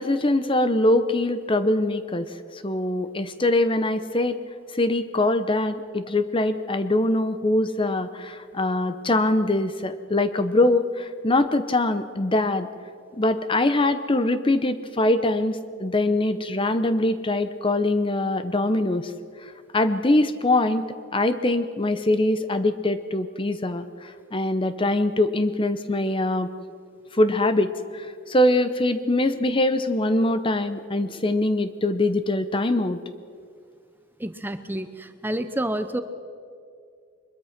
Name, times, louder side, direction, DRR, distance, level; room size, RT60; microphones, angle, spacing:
voice 1, 0.0-4.4 4.7-12.7 13.2-19.1 19.7-20.8 21.1-26.5 27.1-33.0, left 1 dB, 25° left, 11 dB, 0.7 m, -23 dB
voice 2, 34.2-36.0, right 1 dB, 10° right, 10 dB, 0.7 m, -29 dB
23.0 x 21.5 x 5.9 m, 2.3 s
head